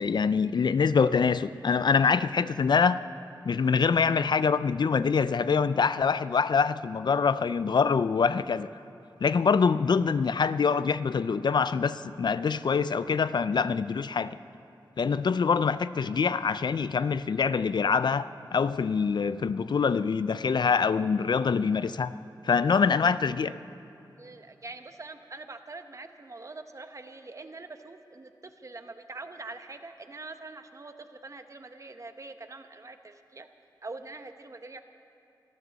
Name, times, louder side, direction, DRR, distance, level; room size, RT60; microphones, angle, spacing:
voice 1, 0.0-3.0 3.5-8.7 9.2-14.4 15.0-22.1 22.4-23.6, left 5 dB, 65° left, 15 dB, 0.4 m, -25 dB
voice 2, 24.2-33.5 33.8-34.8, right 3 dB, 40° right, 8 dB, 0.8 m, -44 dB
24.5 x 14.5 x 4.0 m, 2.8 s
wide cardioid pair, 115°, 8 cm